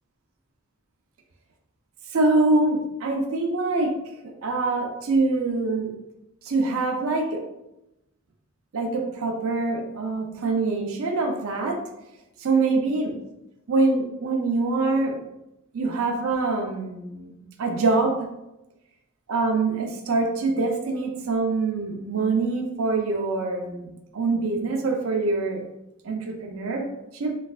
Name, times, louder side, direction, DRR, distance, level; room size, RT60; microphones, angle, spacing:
voice 1, 2.1-3.9 4.4-6.0 6.4-7.4 8.7-11.8 12.4-13.1 13.7-15.2 15.7-18.3 19.3-25.6 26.0-26.9 27.1-27.3, right 3 dB, 80° right, 3 dB, 0.5 m, -24 dB
3.2 x 3.2 x 2.4 m, 0.90 s
head